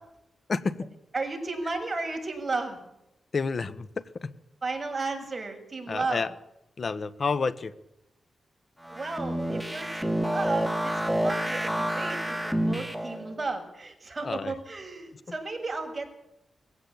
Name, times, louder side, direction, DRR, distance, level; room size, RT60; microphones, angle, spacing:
voice 1, 0.5-1.0 3.3-4.3 5.9-6.3 6.8-7.7 14.2-14.5, left 4 dB, 50° left, 15 dB, 1.4 m, -30 dB
voice 2, 1.1-2.8 4.6-6.2 8.8-16.1, right 3 dB, 30° right, 4 dB, 6.5 m, -34 dB
sound 1, 8.8-13.3, right 1 dB, ahead, 2.7 m, -29 dB
21.0 x 16.5 x 8.9 m, 0.83 s
cardioid pair, 85°, 0 cm